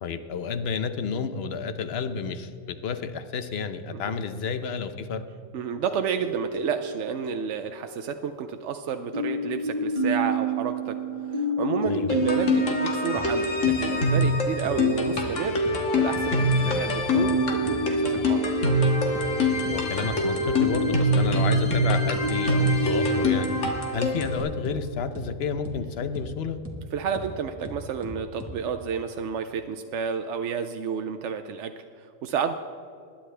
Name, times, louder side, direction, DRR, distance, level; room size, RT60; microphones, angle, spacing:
voice 1, 0.0-5.2 11.8-12.2 19.7-23.5 23.9-26.6, left 5 dB, 60° left, 10 dB, 0.9 m, -31 dB
voice 2, 5.5-11.0 11.3-15.6 16.0-18.8 26.9-32.5, right 7 dB, 70° right, 7 dB, 0.9 m, -31 dB
sound 1, 5.9-8.7 9.1-23.3, right 2 dB, 30° right, 1.6 m, -30 dB
sound 2, 12.1-24.4, left 1 dB, 90° left, 1.8 m, -25 dB
sound 3, 13.1-13.3 13.6-13.8 14.1-14.3 14.6-14.8 15.1-15.3 15.6-15.8 16.1-16.8 17.1-17.3 17.6-17.8 18.1-18.3 18.6-18.8 19.1-19.3 19.6-20.8 21.1-21.3 21.6-21.8 22.1-22.3 22.6-22.8 23.1-23.3 23.6-23.8 24.1-24.8 25.1-25.3 25.6-25.8 26.1-26.3 26.6-26.8 27.1-27.3 27.6-28.5, equal, 10° right, 1.3 m, -38 dB
20.5 x 10.0 x 3.3 m, 2.6 s
omnidirectional pair, 1.3 m